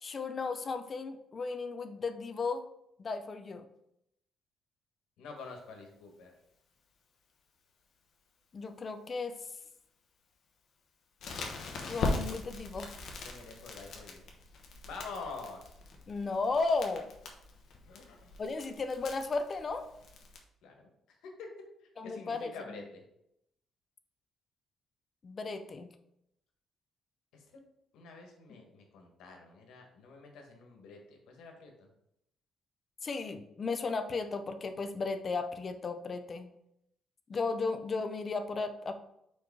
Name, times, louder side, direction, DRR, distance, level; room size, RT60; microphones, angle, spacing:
voice 1, 0.0-2.7 3.0-3.7 8.5-9.4 11.9-12.9 16.1-17.1 18.4-19.9 22.0-22.8 25.2-25.9 28.5-28.6 33.0-36.5 37.3-38.9, left 4 dB, 30° left, 8 dB, 0.5 m, -35 dB
voice 2, 5.2-6.3 13.2-14.2 14.9-15.8 17.8-18.3 20.6-20.9 21.2-21.5 22.0-23.0 27.3-27.6 27.9-31.9, left 4 dB, 85° left, 2 dB, 1.5 m, -47 dB
Crackle, 11.2-20.4, left 3 dB, 55° left, 1.0 m, -40 dB
4.7 x 4.5 x 4.7 m, 0.79 s
cardioid pair, 170°, 0 cm